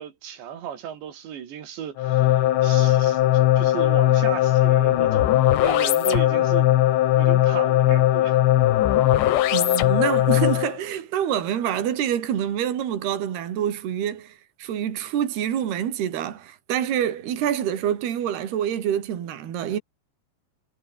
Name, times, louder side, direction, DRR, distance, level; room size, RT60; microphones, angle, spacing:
voice 1, 0.0-6.7 7.2-8.4, right 9 dB, 90° right, 5.2 m, -35 dB
sound 1, 2.0-10.8, left 13 dB, 85° left, 3.8 m, -19 dB
voice 2, 9.5-19.8, right 10 dB, 70° right, 4.6 m, -26 dB
omnidirectional pair, 4.9 m